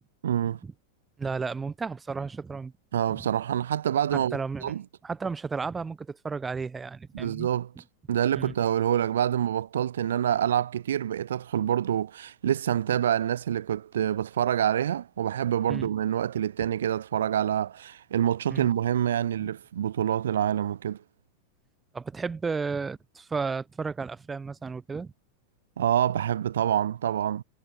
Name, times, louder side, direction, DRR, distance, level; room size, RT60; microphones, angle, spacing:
voice 1, 0.2-0.6 2.9-4.8 7.1-7.7 8.1-21.0 25.8-27.4, right 10 dB, 65° right, 0.4 m, -26 dB
voice 2, 1.2-2.7 3.1-3.2 4.1-4.7 5.0-7.5 8.3-8.5 15.7-15.9 18.5-18.7 19.4-19.5 21.9-25.1, right 4 dB, 15° right, 0.9 m, -33 dB
figure-of-eight pair, 90°, 0 cm